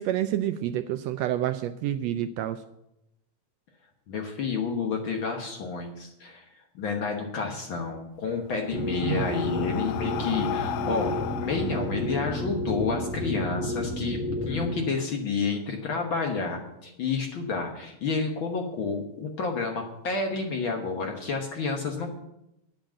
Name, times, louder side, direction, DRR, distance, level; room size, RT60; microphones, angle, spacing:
voice 1, 0.0-2.6 9.0-9.3, right 12 dB, 80° right, 10 dB, 1.6 m, -28 dB
voice 2, 4.1-6.4 6.7-14.2 14.4-22.1, left 4 dB, 55° left, 3 dB, 1.6 m, -30 dB
Breathing, 8.2-12.9, left 13 dB, 80° left, 1.7 m, -36 dB
sound 1, 8.7-14.7, left 1 dB, 15° right, 0.3 m, -31 dB
9.8 x 7.7 x 7.4 m, 0.84 s
omnidirectional pair, 3.3 m